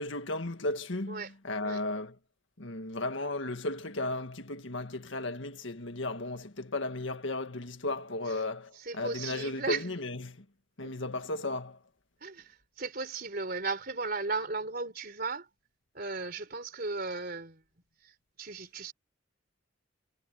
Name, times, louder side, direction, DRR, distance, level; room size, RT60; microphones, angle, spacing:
voice 1, 0.0-2.1 2.6-10.4 10.8-11.8, left 2 dB, 70° left, 1.9 m, -35 dB
voice 2, 8.7-9.8 10.8-10.9 12.2-15.5 15.9-17.6 18.0-18.9, right 3 dB, 45° right, 3.8 m, -36 dB
head